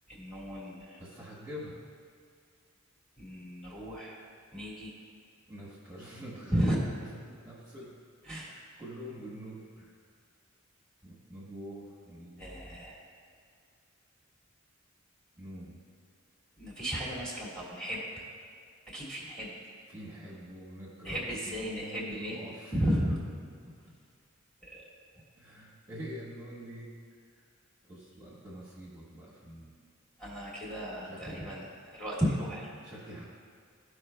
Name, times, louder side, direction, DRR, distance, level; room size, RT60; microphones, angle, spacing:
voice 1, 0.1-1.0 3.2-4.2 4.5-4.9 6.5-6.8 8.2-8.5 12.4-13.0 16.6-18.0 18.9-19.5 21.0-22.4 22.7-23.2 24.6-24.9 30.2-32.7, equal, 5° left, -6 dB, 1.5 m, -34 dB
voice 2, 1.0-1.8 5.5-6.7 7.4-7.9 8.5-9.9 11.0-12.8 15.4-15.7 19.9-22.7 25.4-26.9 27.8-29.7 31.0-31.5 32.8-33.2, equal, 15° right, -8 dB, 1.3 m, -45 dB
13.5 x 4.9 x 2.2 m, 2.2 s
head